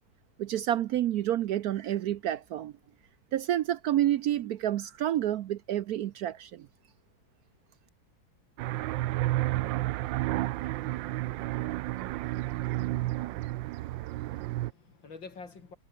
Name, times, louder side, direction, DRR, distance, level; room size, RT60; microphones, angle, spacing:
voice 1, 0.4-2.7 3.3-6.7, right 12 dB, 70° right, 1.0 m, -29 dB
sound 1, 8.6-14.7, right 16 dB, 85° right, 1.3 m, -31 dB
voice 2, 13.7-15.8, left 4 dB, 80° left, 4.3 m, -49 dB
omnidirectional pair, 2.0 m